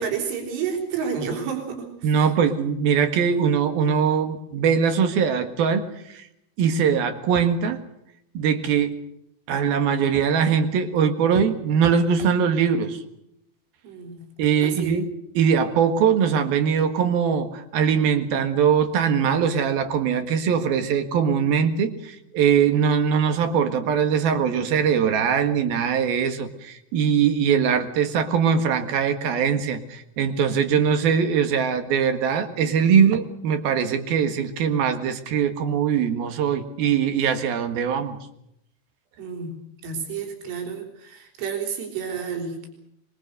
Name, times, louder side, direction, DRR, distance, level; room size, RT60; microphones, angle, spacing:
voice 1, 0.0-2.1 13.8-14.3 14.6-15.0 39.2-42.7, right 6 dB, 80° right, 4 dB, 6.4 m, -30 dB
voice 2, 2.0-6.3 6.6-7.8 8.3-8.9 9.5-13.0 14.4-15.1 15.4-38.2, right 7 dB, 60° right, 8 dB, 3.1 m, -21 dB
24.0 x 24.0 x 6.7 m, 0.77 s
omnidirectional pair, 5.6 m